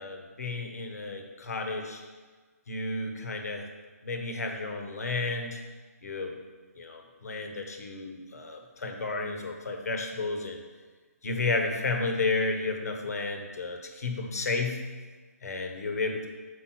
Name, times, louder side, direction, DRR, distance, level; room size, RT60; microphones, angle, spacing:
voice 1, 0.0-2.0 2.7-3.7 4.0-5.6 6.0-6.4 6.8-10.6 11.2-14.8 15.4-16.3, left 3 dB, 70° left, 4 dB, 1.3 m, -32 dB
6.5 x 5.1 x 6.0 m, 1.4 s
hypercardioid pair, 160°, 9 cm